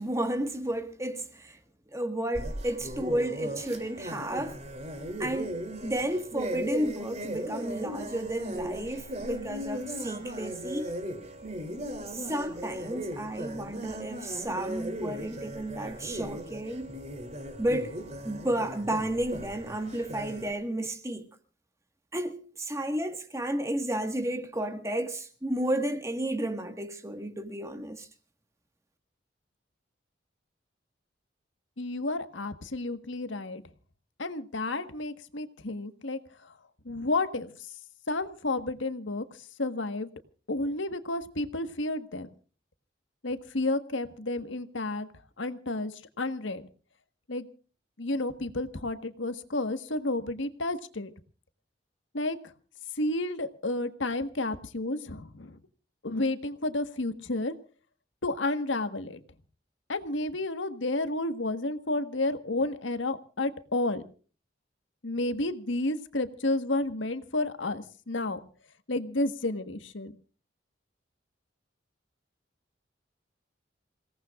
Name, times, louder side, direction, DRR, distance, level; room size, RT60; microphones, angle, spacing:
voice 1, 0.0-1.6 1.9-4.6 5.2-10.9 12.1-16.9 17.6-17.9 18.2-21.3 22.1-28.1, right 1 dB, 15° right, 1.5 m, -32 dB
sound 1, 2.3-20.5, equal, 35° right, 3.0 m, -37 dB
voice 2, 31.8-33.6 34.2-36.5 36.8-37.5 38.1-40.1 40.5-42.3 43.2-45.1 45.4-46.6 47.3-47.5 48.0-51.1 52.1-52.5 53.0-55.6 56.0-57.5 58.2-59.2 59.9-64.0 65.0-68.4 68.9-70.1, left 2 dB, 85° left, 1.5 m, -31 dB
28.0 x 18.0 x 2.4 m
head